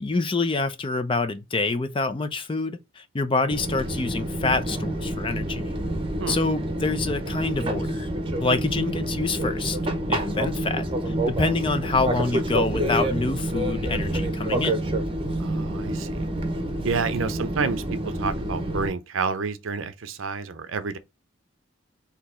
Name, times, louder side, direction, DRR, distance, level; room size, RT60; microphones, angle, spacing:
voice 1, 0.0-5.7 6.3-8.1 8.4-9.8 10.1-14.8, left 3 dB, 25° left, 0.4 m, -26 dB
Fixed-wing aircraft airplane, 3.5-18.9, right 1 dB, 25° right, 0.8 m, -28 dB
voice 2, 15.4-16.3 16.8-17.8 18.2-21.0, right 5 dB, 75° right, 0.6 m, -29 dB
4.1 x 2.9 x 4.2 m
head